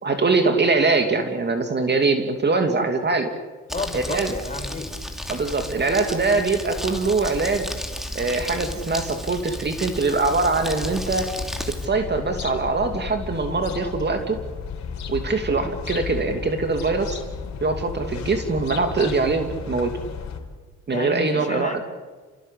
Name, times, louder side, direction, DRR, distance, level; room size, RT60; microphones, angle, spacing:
voice 1, 0.0-3.3 3.9-4.3 5.3-7.7 8.1-11.3 11.8-14.4 15.1-17.2 17.6-19.9 20.9-21.8, right 3 dB, 35° right, 6 dB, 2.7 m, -23 dB
voice 2, 3.7-4.9 20.9-21.8, left 3 dB, 25° left, 5 dB, 4.9 m, -31 dB
Crumpling crinkling, 3.7-11.9, equal, ahead, 3.0 m, -33 dB
sound 1, 10.7-20.4, left 5 dB, 65° left, 4.2 m, -34 dB
29.5 x 16.0 x 8.5 m, 1.4 s
cardioid pair, 90°, 30 cm